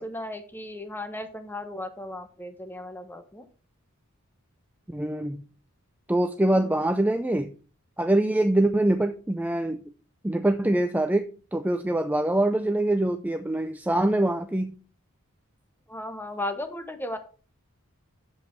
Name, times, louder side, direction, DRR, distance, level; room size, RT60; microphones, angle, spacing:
voice 1, 0.0-3.5 6.6-6.7 15.9-17.2, left 1 dB, 10° left, 8 dB, 1.1 m, -36 dB
voice 2, 4.9-5.4 6.1-7.5 8.0-9.8 10.2-11.2 11.5-14.7, right 1 dB, 10° right, 8 dB, 0.4 m, -24 dB
7.9 x 7.3 x 4.6 m, 0.37 s
head